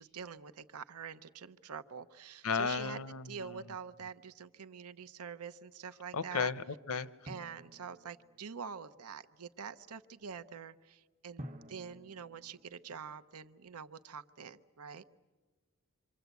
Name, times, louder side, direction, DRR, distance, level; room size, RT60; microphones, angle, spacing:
voice 1, 0.0-3.0 3.2-6.5 6.9-15.0, right 6 dB, 85° right, 13 dB, 0.8 m, -46 dB
voice 2, 2.4-3.6 6.1-7.1, left 5 dB, 75° left, 15 dB, 0.8 m, -34 dB
Drum, 7.3-8.8 11.4-13.5, equal, 35° right, 1.1 m, -51 dB
27.5 x 24.5 x 8.2 m, 1.3 s
head